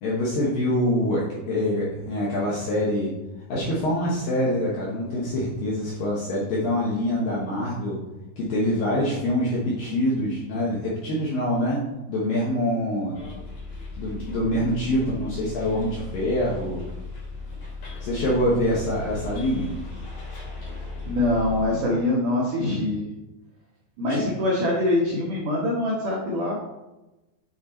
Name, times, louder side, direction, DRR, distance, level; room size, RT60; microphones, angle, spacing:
voice 1, 0.0-3.1 3.5-8.0 8.4-11.8 12.1-13.2 14.0-16.9 18.0-19.7 24.1-24.2, left 1 dB, 70° left, -5 dB, 2.1 m, -25 dB
Bus, 13.1-21.6, left 3 dB, 40° left, 3.3 m, -36 dB
voice 2, 20.7-23.0 24.0-26.6, left 1 dB, 80° right, -4 dB, 1.8 m, -24 dB
9.4 x 4.0 x 4.3 m, 1.0 s
omnidirectional pair, 5.7 m